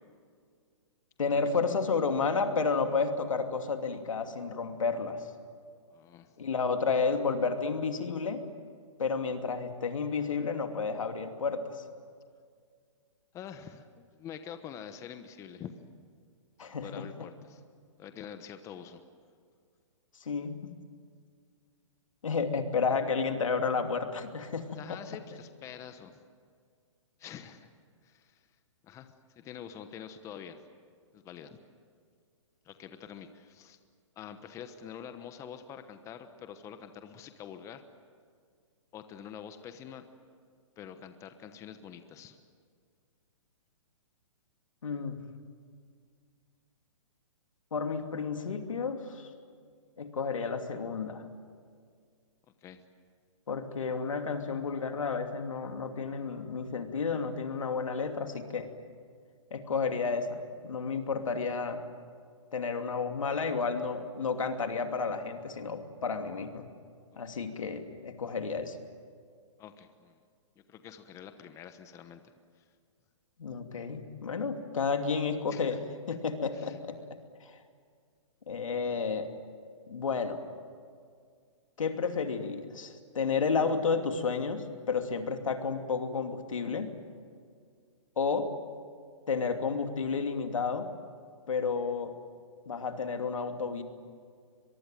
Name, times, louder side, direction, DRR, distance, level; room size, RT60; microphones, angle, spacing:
voice 1, 1.2-5.2 6.4-8.4 9.0-11.8 16.6-17.0 20.2-20.7 22.2-25.0 44.8-45.2 47.7-49.3 50.0-51.2 53.5-58.7 59.5-61.8 62.5-66.7 67.2-68.8 73.4-75.8 76.1-77.0 77.4-77.6 78.5-79.3 79.9-80.4 81.8-86.9 88.2-88.5 89.3-90.9 91.5-92.1 92.7-93.8, left 5 dB, 85° left, 6 dB, 2.7 m, -31 dB
voice 2, 5.9-6.3 13.3-15.7 16.8-17.6 18.0-19.0 24.7-26.1 27.2-27.7 28.0-28.4 28.8-30.6 31.1-31.6 32.6-33.8 34.2-37.8 38.9-40.0 40.8-42.4 52.6-52.8 67.3-67.4 69.6-70.2 70.7-72.6 75.5-75.8 76.5-76.8, left 8 dB, 20° left, 9 dB, 1.1 m, -46 dB
23.5 x 23.0 x 9.2 m, 2.1 s
hypercardioid pair, 145°, 16 cm